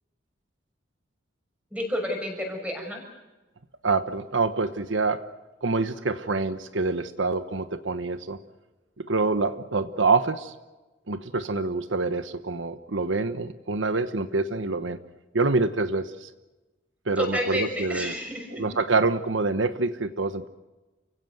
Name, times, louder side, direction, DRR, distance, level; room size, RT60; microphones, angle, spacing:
voice 1, 1.7-3.0 17.2-18.7, equal, 5° right, 2 dB, 6.3 m, -30 dB
voice 2, 3.8-5.2 5.6-8.4 9.0-10.5 11.1-15.0 15.3-16.3 17.1-18.1 18.6-20.5, right 3 dB, 85° right, 11 dB, 1.1 m, -26 dB
29.0 x 17.0 x 8.0 m, 1.1 s
head